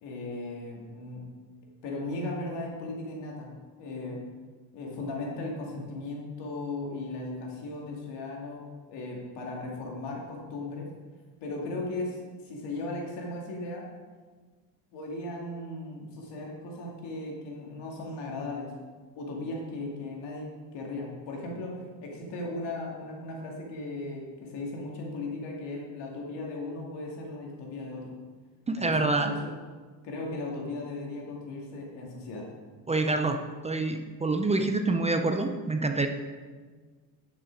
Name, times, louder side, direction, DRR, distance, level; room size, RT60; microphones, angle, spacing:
voice 1, 0.0-1.3 1.8-4.2 4.7-10.9 11.4-13.9 14.9-18.7 19.2-28.2 28.8-29.5 30.0-32.5, left 2 dB, 85° left, -1 dB, 2.5 m, -37 dB
voice 2, 28.7-29.3 32.9-33.4 33.6-36.1, right 2 dB, 15° right, 6 dB, 0.5 m, -26 dB
10.5 x 6.5 x 4.7 m, 1.4 s
cardioid pair, 135°, 41 cm